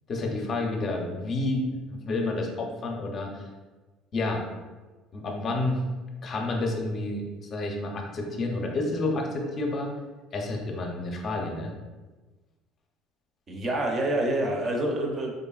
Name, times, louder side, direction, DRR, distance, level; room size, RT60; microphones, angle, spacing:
voice 1, 0.1-3.5 4.1-4.4 5.1-5.8 6.2-7.2 7.5-9.9 10.3-11.7, left 2 dB, 35° left, 1 dB, 0.6 m, -29 dB
voice 2, 13.5-15.3, right 1 dB, 30° right, 1 dB, 0.6 m, -27 dB
3.9 x 3.3 x 2.3 m, 1.2 s
cardioid pair, 140°, 0 cm